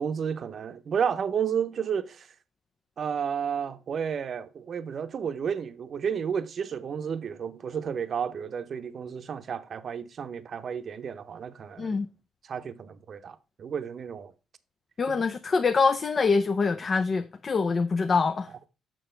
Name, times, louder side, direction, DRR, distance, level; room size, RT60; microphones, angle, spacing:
voice 1, 0.0-2.3 3.0-12.0 12.5-14.3 15.1-15.2, right 7 dB, 55° right, 0.7 m, -32 dB
voice 2, 15.0-18.5, left 4 dB, 40° left, 0.5 m, -24 dB
6.9 x 6.0 x 4.4 m
cardioid pair, 90°, 0 cm